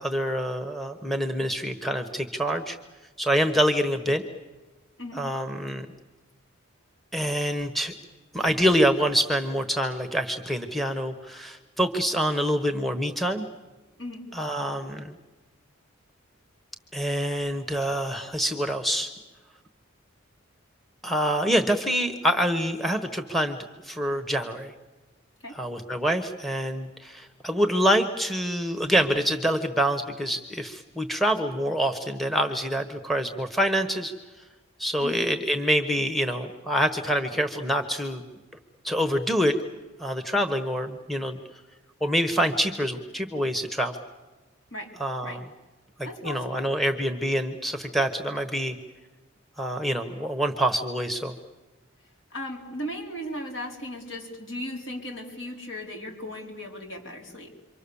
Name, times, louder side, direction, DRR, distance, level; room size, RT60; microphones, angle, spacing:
voice 1, 0.0-2.8 3.2-4.2 5.1-5.9 7.1-7.9 8.3-13.5 14.3-15.2 16.9-19.1 21.0-23.6 23.8-24.7 25.5-34.1 34.8-38.2 38.8-39.6 40.0-41.4 42.0-44.0 45.0-45.4 46.0-48.8 49.6-51.4, equal, ahead, 6 dB, 1.2 m, -26 dB
voice 2, 46.0-46.7 52.3-57.5, left 1 dB, 60° left, 1 dB, 4.5 m, -36 dB
28.5 x 24.5 x 7.1 m, 1.2 s
head